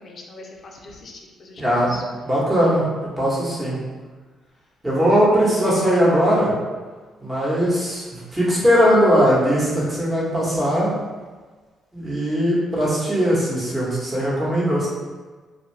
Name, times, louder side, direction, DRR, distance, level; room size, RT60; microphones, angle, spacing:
voice 1, 0.0-2.0, left 3 dB, 50° left, 1 dB, 0.5 m, -41 dB
voice 2, 1.6-2.0 2.2-2.8 3.2-3.8 4.8-6.5 7.2-11.0 11.9-14.9, equal, 15° right, -7 dB, 1.2 m, -19 dB
2.7 x 2.3 x 3.2 m, 1.4 s
cardioid pair, 90°, 0 cm